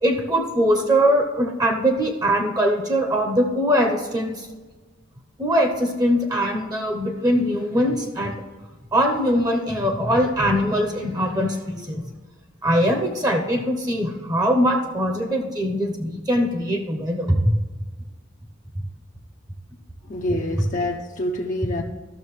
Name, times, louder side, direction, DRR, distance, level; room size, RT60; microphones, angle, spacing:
voice 1, 0.0-4.5 5.4-8.3 8.9-12.0 12.6-17.4, equal, 20° right, 3 dB, 0.8 m, -22 dB
voice 2, 20.0-21.8, left 1 dB, 40° left, -1 dB, 0.6 m, -27 dB
13.0 x 6.4 x 3.2 m, 1.3 s
head